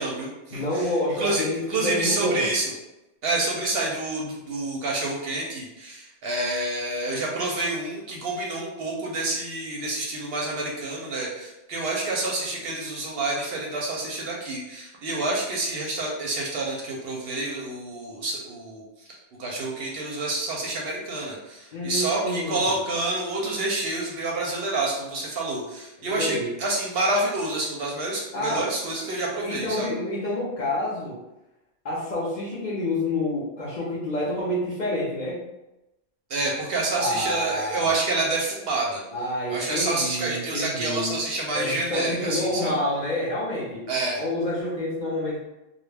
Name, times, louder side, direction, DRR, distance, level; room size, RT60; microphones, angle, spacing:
voice 1, 0.0-0.9 1.2-2.7 3.2-18.8 19.4-29.9 36.3-39.0 39.5-42.7 43.9-44.2, right 2 dB, 65° right, -2 dB, 0.7 m, -28 dB
voice 2, 0.5-2.5 21.7-22.7 26.0-26.5 28.3-28.7 29.4-31.2 31.8-35.4 37.0-37.9 39.1-41.2 41.5-43.9 44.2-45.4, left 1 dB, 50° left, -7 dB, 0.6 m, -28 dB
2.2 x 2.0 x 3.2 m, 0.97 s
omnidirectional pair, 1.2 m